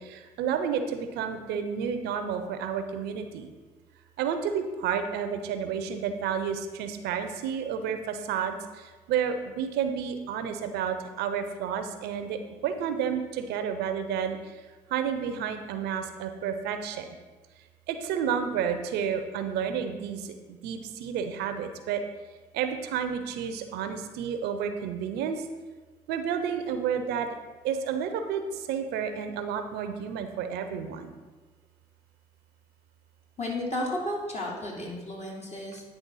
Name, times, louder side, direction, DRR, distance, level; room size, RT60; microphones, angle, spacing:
voice 1, 0.0-3.5 4.2-14.5 14.9-17.1 17.9-22.0 22.5-25.4 26.1-27.3 27.6-31.1, right 7 dB, 80° right, 8 dB, 0.7 m, -31 dB
voice 2, 33.4-35.8, left 1 dB, 40° left, -3 dB, 2.6 m, -33 dB
9.5 x 3.5 x 5.4 m, 1.3 s
hypercardioid pair, 55°, 17 cm